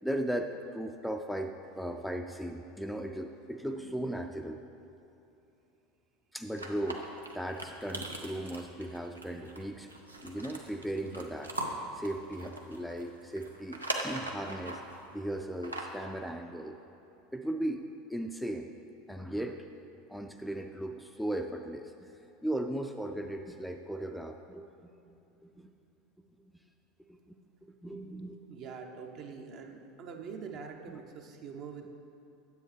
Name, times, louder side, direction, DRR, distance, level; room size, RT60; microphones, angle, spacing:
voice 1, 0.0-4.6 6.3-7.1 7.3-9.9 10.2-11.5 11.9-14.8 15.1-16.8 17.3-18.7 19.1-19.7 20.1-22.1 22.4-24.6 25.6-25.7 27.3-27.4 27.8-28.4 30.9-31.0, right 1 dB, ahead, 4 dB, 0.4 m, -37 dB
sound 1, 6.6-15.0 15.5-16.1, right 1 dB, 90° right, 0.6 m, -40 dB
voice 2, 28.5-31.9, right 6 dB, 45° right, 3 dB, 0.8 m, -44 dB
9.9 x 7.8 x 3.3 m, 2.8 s
figure-of-eight pair, 75°, 0 cm